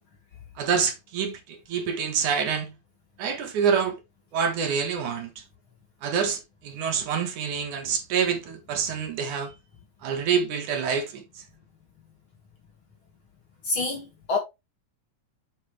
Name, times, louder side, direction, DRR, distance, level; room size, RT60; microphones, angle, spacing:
voice 1, 0.6-2.7 3.2-4.0 4.3-5.4 6.0-9.5 10.0-11.2, right 6 dB, 65° right, 2.8 m, -27 dB
voice 2, 13.7-14.4, left 3 dB, 45° left, 2.3 m, -27 dB
7.2 x 6.6 x 3.2 m
omnidirectional pair, 4.0 m